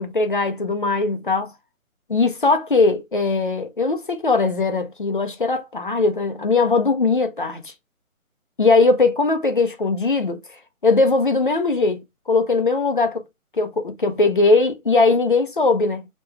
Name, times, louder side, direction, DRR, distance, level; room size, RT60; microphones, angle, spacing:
voice 1, 0.0-1.5 2.1-7.7 8.6-10.4 10.8-13.2 13.6-16.1, left 3 dB, 40° left, 0.5 m, -20 dB
5.2 x 2.2 x 3.1 m
hypercardioid pair, 175°, 43 cm